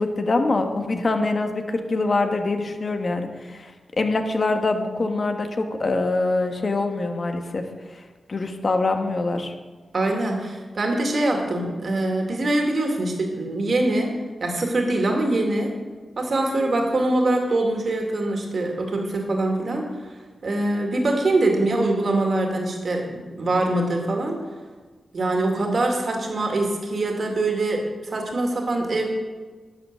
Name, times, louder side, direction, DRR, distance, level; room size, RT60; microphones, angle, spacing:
voice 1, 0.0-9.5, left 3 dB, 50° left, 5 dB, 1.3 m, -24 dB
voice 2, 9.9-14.1 14.4-15.7 16.2-19.8 20.4-24.3 25.1-29.1, right 2 dB, 60° right, 1 dB, 2.3 m, -23 dB
11.0 x 6.5 x 6.8 m, 1.4 s
cardioid pair, 60°, 0 cm